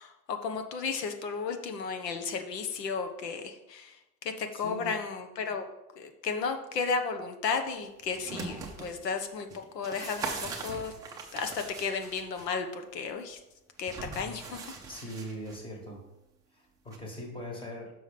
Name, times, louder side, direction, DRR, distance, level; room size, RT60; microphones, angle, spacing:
voice 1, 0.0-5.7 5.9-9.5 9.7-10.9 11.3-13.4 13.8-14.6, left 5 dB, 85° left, 6 dB, 1.3 m, -34 dB
voice 2, 4.5-4.9 14.9-16.0 16.5-17.9, equal, 10° left, 1 dB, 1.4 m, -41 dB
sound 1, 8.0-8.9 9.5-12.5 13.8-15.6 16.9-17.0, right 4 dB, 10° right, 0.5 m, -40 dB
6.1 x 5.9 x 5.2 m, 0.93 s
supercardioid pair, 145°, 48 cm